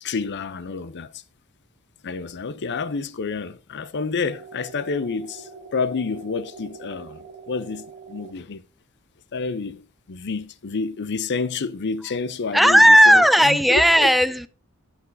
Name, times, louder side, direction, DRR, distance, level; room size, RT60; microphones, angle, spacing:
voice 1, 0.0-1.2 2.0-8.6 9.3-14.1, left 4 dB, 50° left, 0.6 m, -29 dB
sound 1, 4.3-8.3, right 4 dB, 45° right, 1.7 m, -43 dB
voice 2, 12.5-14.5, equal, ahead, 0.3 m, -14 dB
11.5 x 7.3 x 2.6 m
head